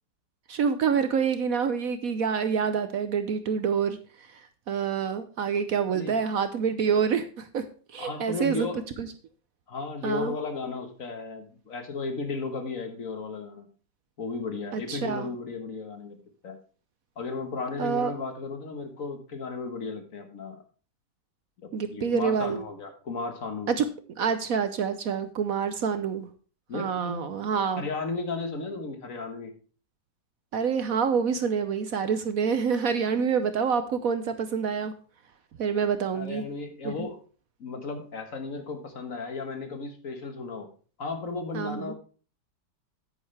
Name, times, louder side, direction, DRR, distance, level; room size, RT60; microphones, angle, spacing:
voice 1, 0.5-8.7 9.0-9.1 10.0-10.3 14.7-15.3 17.8-18.1 21.7-22.6 23.7-23.9 24.2-26.3 26.7-27.9 30.5-34.9 35.6-36.4 36.8-37.1 41.5-41.9, right 6 dB, 60° right, 10 dB, 1.1 m, -27 dB
voice 2, 8.0-8.8 9.7-13.7 14.2-16.2 16.4-16.6 17.2-20.6 21.9-23.7 26.7-27.3 27.6-29.5 36.1-37.2 37.6-40.7 41.0-41.9, left 4 dB, 50° left, 6 dB, 1.7 m, -34 dB
9.6 x 9.2 x 3.3 m, 0.38 s
omnidirectional pair, 1.9 m